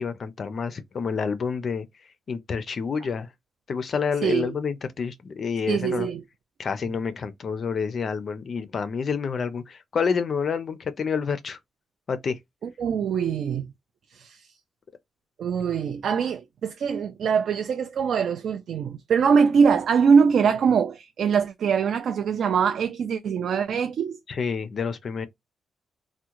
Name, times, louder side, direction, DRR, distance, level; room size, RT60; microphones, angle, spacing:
voice 1, 0.0-3.3 3.7-6.1 6.6-11.6 12.1-12.4 24.3-25.3, left 5 dB, 40° left, 0.4 m, -28 dB
voice 2, 4.2-4.5 5.7-6.2 12.8-13.7 14.1-14.5 15.4-24.2, right 6 dB, 55° right, 0.3 m, -23 dB
3.5 x 2.1 x 2.9 m
wide cardioid pair, 175°, 0 cm